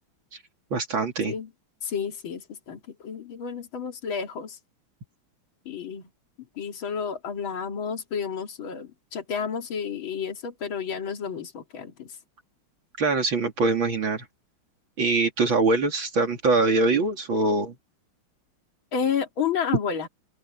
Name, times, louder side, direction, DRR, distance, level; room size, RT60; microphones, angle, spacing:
voice 1, 0.7-1.3 13.0-14.3 15.0-17.7, right 3 dB, 70° right, 3.4 m, -23 dB
voice 2, 1.8-4.6 5.6-6.1 6.6-12.2 18.9-20.1, left 7 dB, 70° left, 3.2 m, -31 dB
open air
omnidirectional pair, 2.3 m